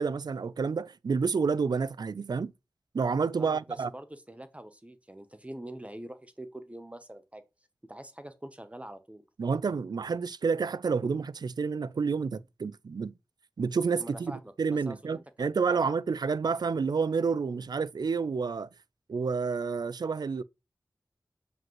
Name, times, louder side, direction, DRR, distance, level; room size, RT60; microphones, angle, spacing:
voice 1, 0.0-2.5 2.9-3.9 9.4-13.1 13.6-18.7 19.1-20.4, right 5 dB, 65° right, 0.4 m, -29 dB
voice 2, 3.4-7.4 7.9-9.2 14.0-15.9, right 1 dB, 15° right, 0.8 m, -45 dB
7.5 x 5.2 x 3.0 m
cardioid pair, 50°, 7 cm